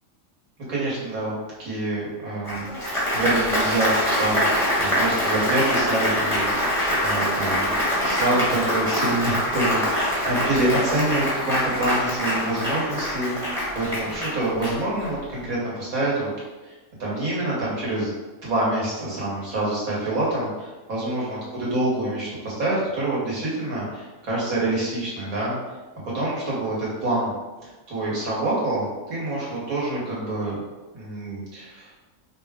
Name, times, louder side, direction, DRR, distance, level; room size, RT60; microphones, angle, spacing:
voice 1, 0.7-4.5 4.7-16.3 16.6-16.7 17.0-18.1 18.4-25.6 26.1-27.3 27.9-30.6 30.9-31.9, right 2 dB, 85° right, -6 dB, 1.8 m, -26 dB
Applause, 2.4-15.2, equal, ahead, 1.2 m, -24 dB
5.1 x 2.2 x 3.5 m, 1.2 s
omnidirectional pair, 1.4 m